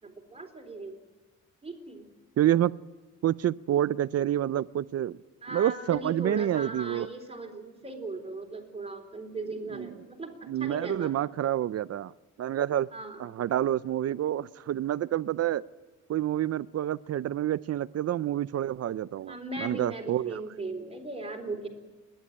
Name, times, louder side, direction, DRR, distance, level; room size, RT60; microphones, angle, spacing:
voice 1, 0.0-1.0 1.6-2.1 5.4-11.1 12.9-13.5 19.2-21.7, right 2 dB, 20° right, 4 dB, 3.9 m, -38 dB
voice 2, 2.4-2.8 3.2-5.2 5.5-7.1 9.7-9.9 10.5-12.1 12.4-12.9 13.2-15.6 16.1-20.4, right 11 dB, 50° right, 18 dB, 0.6 m, -28 dB
29.5 x 11.5 x 8.9 m, 1.3 s
cardioid pair, 120°, 31 cm